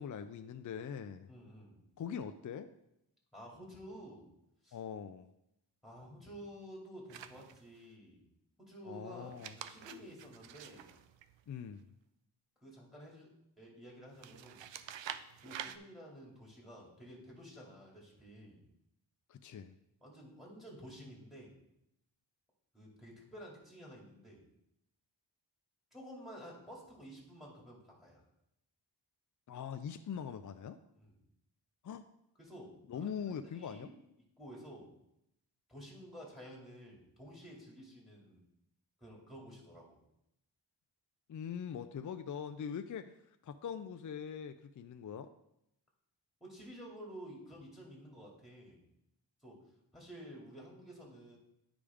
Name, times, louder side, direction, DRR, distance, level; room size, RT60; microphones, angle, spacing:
voice 1, 0.0-1.3 2.0-2.7 4.7-5.3 8.8-9.6 11.5-11.8 19.3-19.7 29.5-30.8 31.8-32.0 32.9-33.9 41.3-43.2 43.4-45.3, left 7 dB, 45° left, 9 dB, 0.4 m, -42 dB
voice 2, 1.3-1.8 3.3-4.3 4.6-4.8 5.8-8.3 8.6-11.0 12.6-13.3 13.6-14.7 15.4-18.6 20.0-21.6 22.7-24.4 25.9-28.2 30.9-31.1 32.4-34.0 34.4-34.9 35.7-38.4 39.0-40.0 46.4-48.8 49.4-51.4, equal, ahead, -3 dB, 2.4 m, -52 dB
sound 1, 7.1-7.9 9.2-11.8 14.2-15.8, right 9 dB, 80° right, 0.5 m, -47 dB
9.8 x 5.0 x 3.5 m, 0.82 s
wide cardioid pair, 80°, 44 cm